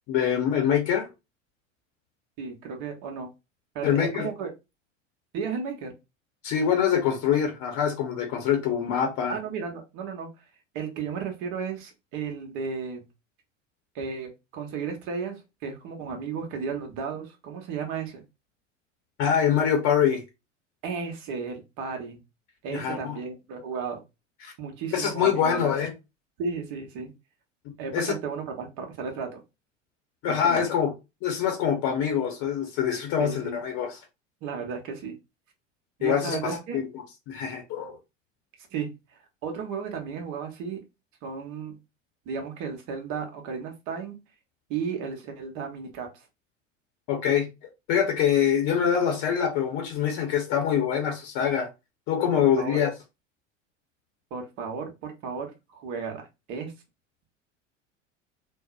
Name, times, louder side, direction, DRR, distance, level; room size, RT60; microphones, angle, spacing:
voice 1, 0.1-1.1 3.8-4.3 6.4-9.4 19.2-20.2 22.7-23.2 24.4-24.5 24.9-25.9 27.9-28.1 30.2-30.9 31.2-34.0 36.0-36.9 37.3-38.0 47.1-47.5 47.9-51.7 52.1-52.9, left 8 dB, 45° left, 0.7 m, -24 dB
voice 2, 2.4-3.3 3.7-4.5 5.3-5.9 9.3-10.4 10.7-13.1 13.9-18.2 20.8-22.2 22.6-24.0 24.6-25.7 26.4-27.1 27.8-29.4 30.2-30.7 33.2-33.6 34.4-35.1 36.0-36.8 38.7-38.9 39.4-40.8 41.2-41.8 42.3-44.2 44.7-46.2 52.3-52.8 54.3-55.5 55.7-56.2 56.5-56.7, right 6 dB, 50° right, 0.9 m, -34 dB
2.6 x 2.0 x 2.3 m
hypercardioid pair, 80°, 38 cm